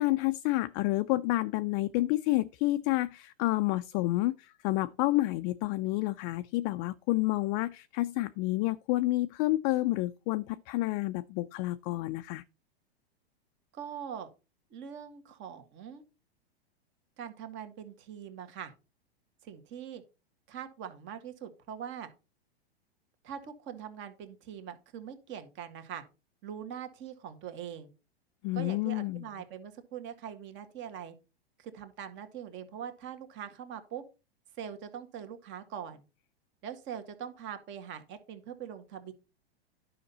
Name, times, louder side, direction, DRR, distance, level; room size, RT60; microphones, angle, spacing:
voice 1, 0.0-12.4 28.4-29.3, left 18 dB, 40° left, 0.5 m, -29 dB
voice 2, 13.7-14.3 14.7-16.0 17.2-18.7 19.4-20.0 20.5-22.1 23.2-26.0 26.4-27.9 28.5-31.1 31.6-34.0 34.6-36.0 36.6-39.1, right 8 dB, 40° right, 1.8 m, -42 dB
10.5 x 5.8 x 4.1 m
hypercardioid pair, 115°, 31 cm